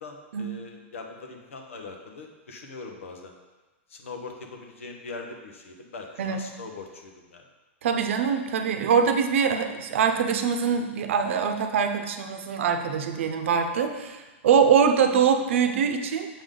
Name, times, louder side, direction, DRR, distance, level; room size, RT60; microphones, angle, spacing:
voice 1, 0.0-3.3 3.9-7.4, left 3 dB, 90° left, 3 dB, 1.1 m, -41 dB
voice 2, 7.8-16.3, right 6 dB, 70° right, 6 dB, 0.7 m, -23 dB
7.0 x 5.2 x 3.8 m, 1.2 s
hypercardioid pair, 140°, 7 cm